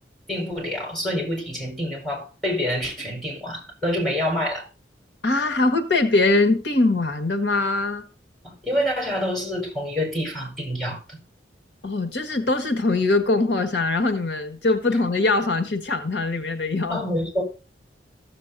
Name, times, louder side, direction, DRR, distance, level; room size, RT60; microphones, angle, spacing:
voice 1, 0.3-4.7 8.6-11.2 16.9-17.4, equal, ahead, 4.3 m, -27 dB
voice 2, 5.2-8.0 11.8-17.0, left 2 dB, 85° left, 1.6 m, -22 dB
15.0 x 7.6 x 2.6 m
head